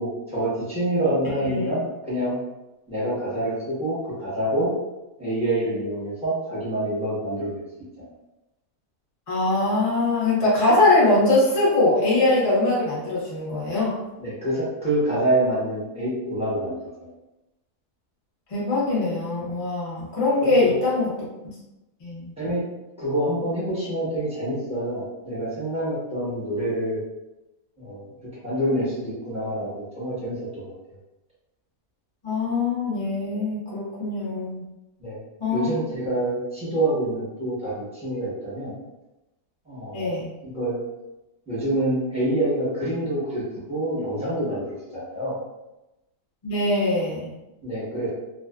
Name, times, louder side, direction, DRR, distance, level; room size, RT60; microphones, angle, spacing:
voice 1, 0.0-2.4 2.9-4.7 5.2-7.6 14.2-16.7 20.4-20.7 22.4-22.6 23.0-27.0 27.8-28.0 28.4-30.7 35.0-35.2 35.5-38.7 39.7-40.1 40.4-40.8 41.5-43.4 43.7-45.4 47.6-48.1, right 1 dB, 5° right, -9 dB, 0.7 m, -26 dB
voice 2, 9.3-14.0 18.5-21.1 22.0-22.3 32.2-34.6 35.4-35.7 39.9-40.3 46.4-47.3, left 2 dB, 35° left, -7 dB, 0.6 m, -22 dB
2.5 x 2.3 x 2.3 m, 0.98 s
omnidirectional pair, 1.6 m